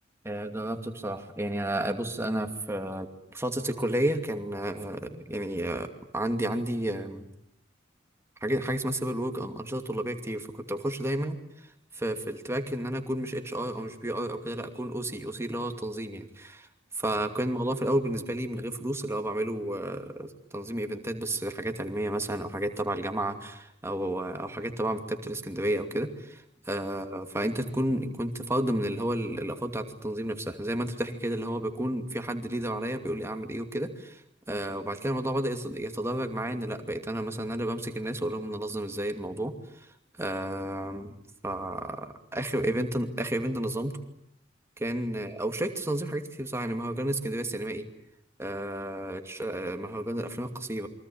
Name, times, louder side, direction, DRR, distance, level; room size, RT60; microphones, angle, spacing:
voice 1, 0.2-3.1 3.3-7.2 8.4-11.4 11.9-16.7 17.0-34.2 34.5-39.5 39.8-39.9 40.2-41.1 41.4-44.0 44.8-47.8 48.4-50.9, right 1 dB, 15° right, 6 dB, 2.6 m, -31 dB
28.0 x 24.0 x 8.8 m, 0.77 s
head